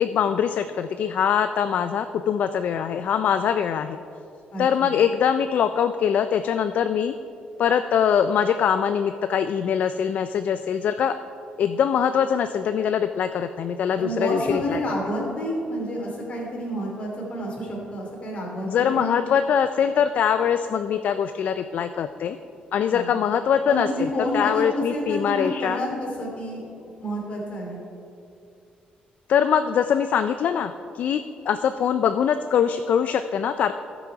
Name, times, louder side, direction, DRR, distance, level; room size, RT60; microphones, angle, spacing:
voice 1, 0.0-4.0 4.6-7.1 7.6-11.1 11.6-14.8 18.6-22.4 22.7-25.8 29.3-33.7, left 8 dB, 55° left, 10 dB, 0.3 m, -23 dB
voice 2, 4.5-5.0 14.0-19.2 22.9-23.2 23.7-27.8, equal, 40° left, -1 dB, 2.6 m, -29 dB
13.5 x 6.1 x 4.7 m, 2.6 s
cardioid pair, 150°, 3 cm